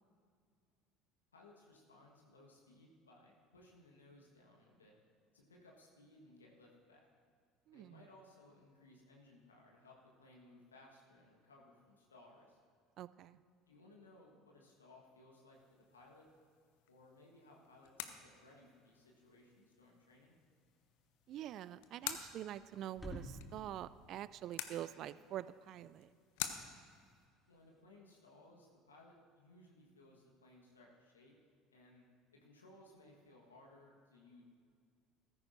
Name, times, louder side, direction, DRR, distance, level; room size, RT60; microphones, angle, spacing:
voice 1, 1.3-4.9 5.3-7.1 7.7-12.6 13.7-16.3 16.9-20.4 27.5-31.4 31.7-32.1 32.3-34.4, left 2 dB, 85° left, -1 dB, 1.4 m, -62 dB
voice 2, 7.7-8.0 13.0-13.4 21.3-26.1, right 12 dB, 50° right, 17 dB, 0.3 m, -46 dB
sound 1, 15.5-27.3, left 11 dB, 65° left, 0.7 m, -50 dB
sound 2, 18.9-27.8, equal, 10° left, 2.1 m, -57 dB
14.5 x 13.5 x 2.6 m, 2.1 s
figure-of-eight pair, 65°, 0 cm